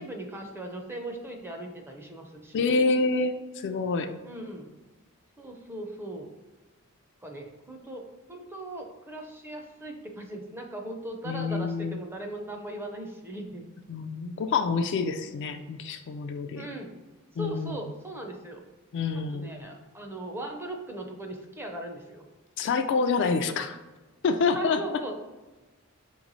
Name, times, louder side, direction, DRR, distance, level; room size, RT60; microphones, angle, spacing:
voice 1, 0.0-2.9 4.2-4.7 5.4-6.3 7.2-8.0 8.3-13.7 16.5-16.9 17.4-18.6 19.3-22.3 24.5-25.1, right 1 dB, 10° right, 2 dB, 0.5 m, -38 dB
voice 2, 2.5-4.1 11.2-12.0 13.9-16.7 17.4-17.8 18.9-19.5 22.6-23.8 24.2-24.8, left 4 dB, 55° left, 7 dB, 0.3 m, -27 dB
4.2 x 3.0 x 3.9 m, 1.2 s
head